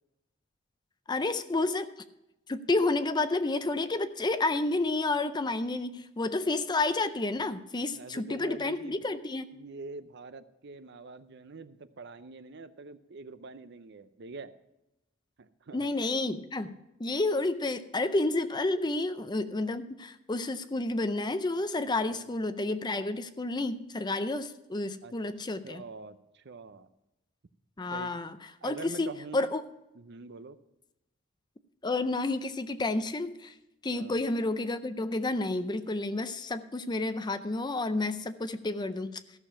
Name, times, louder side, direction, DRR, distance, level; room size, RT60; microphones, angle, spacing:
voice 1, 1.1-1.9 2.5-9.5 15.7-25.8 27.8-28.4 28.6-29.6 31.8-33.5 33.8-39.2, left 2 dB, 20° left, 11 dB, 0.5 m, -30 dB
voice 2, 7.9-9.0 9.5-14.5 15.4-15.9 22.1-22.3 25.0-25.1 25.6-26.9 27.9-28.2 28.6-29.5 30.0-30.6 33.9-34.2, right 3 dB, 55° right, 13 dB, 0.6 m, -45 dB
14.0 x 6.8 x 5.8 m, 0.94 s
head